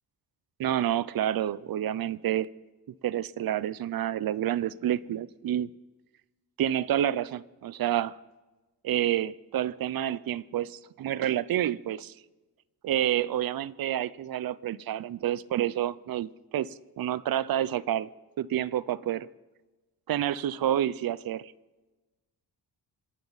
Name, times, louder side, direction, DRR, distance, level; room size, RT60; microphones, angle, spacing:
voice 1, 0.6-2.5 3.0-5.7 6.6-8.2 8.8-12.1 12.8-18.1 18.4-19.3 20.1-21.5, right 11 dB, 60° right, 20 dB, 0.6 m, -29 dB
26.0 x 12.5 x 4.0 m, 1.2 s
cardioid pair, 120°, 41 cm